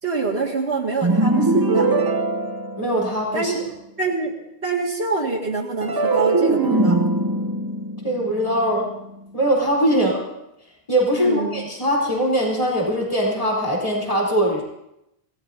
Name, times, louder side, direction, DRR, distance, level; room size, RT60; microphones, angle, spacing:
voice 1, 0.0-1.9 3.3-3.6 4.0-4.3 4.6-7.1 9.9-10.1 11.2-11.6, right 4 dB, 85° right, -4 dB, 2.4 m, -26 dB
sound 1, 1.0-3.4 5.8-9.1, right 2 dB, 25° right, 0.8 m, -21 dB
voice 2, 2.8-3.5 8.0-8.9 9.3-10.2 10.9-14.6, equal, 35° left, -4 dB, 4.1 m, -21 dB
27.0 x 17.0 x 2.8 m, 0.85 s
omnidirectional pair, 1.1 m